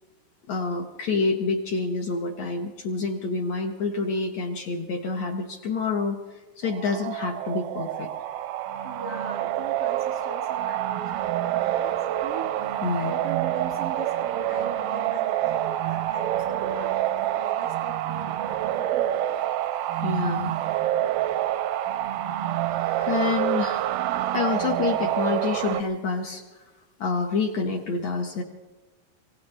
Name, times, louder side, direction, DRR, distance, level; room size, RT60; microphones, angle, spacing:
voice 1, 0.5-8.1 12.8-13.1 20.0-20.5 22.7-23.9 24.3-26.4 27.0-28.4, left 4 dB, 65° left, 2 dB, 1.9 m, -27 dB
sound 1, 6.6-25.8, right 12 dB, 90° right, 2.6 m, -27 dB
voice 2, 8.8-12.5 12.9-19.5, right 2 dB, 50° right, 1 dB, 0.9 m, -40 dB
26.0 x 17.0 x 3.2 m, 1.3 s
omnidirectional pair, 4.2 m